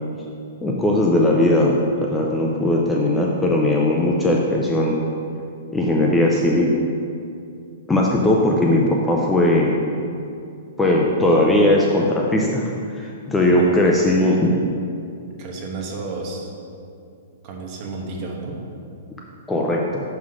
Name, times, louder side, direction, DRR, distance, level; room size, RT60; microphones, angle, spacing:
voice 1, 0.6-5.0 5.7-6.7 7.9-9.8 10.8-14.5 19.5-20.0, left 1 dB, 5° left, -2 dB, 0.5 m, -18 dB
voice 2, 13.5-14.1 15.4-16.5 17.4-18.6, right 3 dB, 30° right, 0 dB, 1.1 m, -32 dB
6.3 x 5.7 x 4.8 m, 2.5 s
hypercardioid pair, 165°, 0 cm